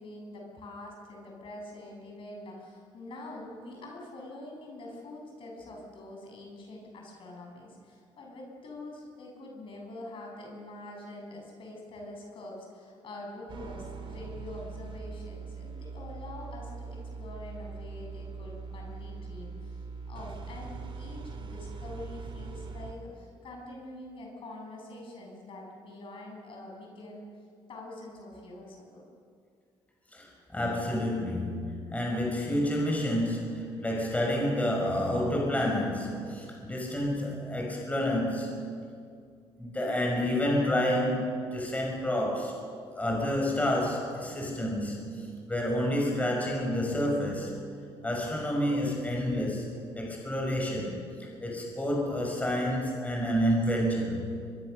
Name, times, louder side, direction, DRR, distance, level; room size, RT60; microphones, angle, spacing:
voice 1, 0.0-27.3 27.7-29.0, left 1 dB, 55° left, 0 dB, 7.1 m, -45 dB
sound 1, 13.5-22.9, right 4 dB, 55° right, 3.6 m, -41 dB
voice 2, 30.1-38.7 39.6-42.6 42.9-47.5 48.0-54.2, equal, 15° left, -1 dB, 6.1 m, -29 dB
23.0 x 23.0 x 6.7 m, 2.3 s
cardioid pair, 100°, 11 cm